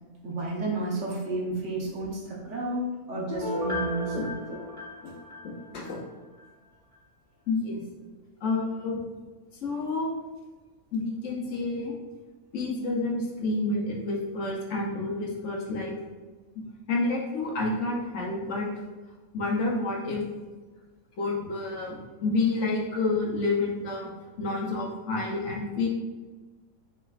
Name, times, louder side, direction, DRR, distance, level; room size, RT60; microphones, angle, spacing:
voice 1, 0.2-4.4, right 2 dB, 60° right, -2 dB, 1.1 m, -32 dB
Piano, 3.3-6.0 6.4-6.5, left 1 dB, 15° left, 0.7 m, -34 dB
voice 2, 5.4-6.0 7.5-7.8 8.4-9.0 9.6-10.1 10.9-12.0 12.5-15.9 16.9-18.7 19.3-20.2 21.2-24.1 24.4-25.9, left 3 dB, 60° left, -2 dB, 1.0 m, -29 dB
5.4 x 3.1 x 2.4 m, 1.3 s
omnidirectional pair, 1.5 m